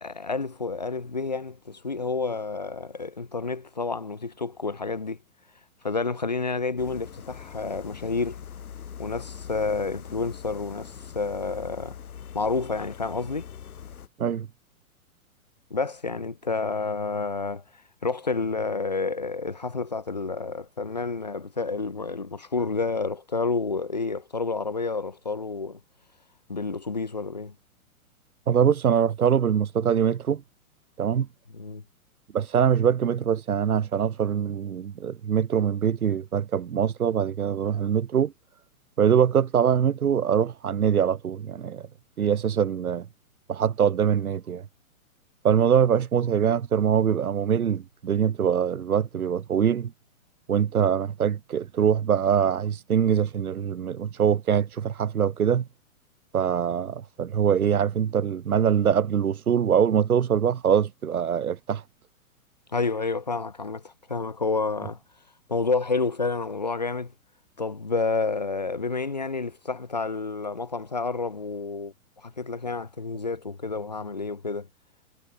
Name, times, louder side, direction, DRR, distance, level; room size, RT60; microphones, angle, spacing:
voice 1, 0.0-5.2 5.8-8.4 9.0-12.0 12.3-13.5 15.7-17.6 18.0-25.8 26.5-27.5 31.5-31.8 62.7-65.0 65.5-67.1 67.6-71.9 72.2-74.7, left 4 dB, 30° left, 0.4 m, -29 dB
sound 1, 6.8-14.1, left 8 dB, 75° left, 3.0 m, -42 dB
voice 2, 28.5-30.4 31.0-31.3 32.3-38.3 39.0-41.8 42.2-43.1 43.5-44.6 45.4-49.9 50.5-55.7 56.3-61.8, right 8 dB, 80° right, 3.2 m, -23 dB
hypercardioid pair, 175°, 43 cm